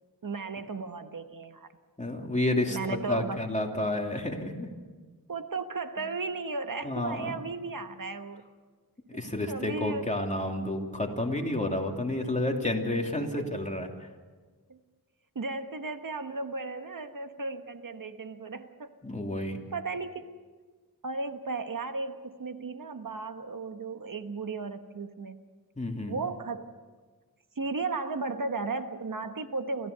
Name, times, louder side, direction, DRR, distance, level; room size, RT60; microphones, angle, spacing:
voice 1, 0.2-1.7 2.7-3.4 5.3-8.4 9.5-10.1 13.2-13.3 14.7-14.8 15.3-18.9 19.7-20.3 21.0-25.4 26.1-26.7 27.6-29.9, right 3 dB, 60° right, 8 dB, 1.2 m, -35 dB
voice 2, 2.0-4.7 6.8-7.4 9.1-14.1 19.0-19.6 25.8-26.2, left 1 dB, 20° left, 2 dB, 2.9 m, -30 dB
29.0 x 14.5 x 6.8 m, 1.4 s
wide cardioid pair, 65°, 38 cm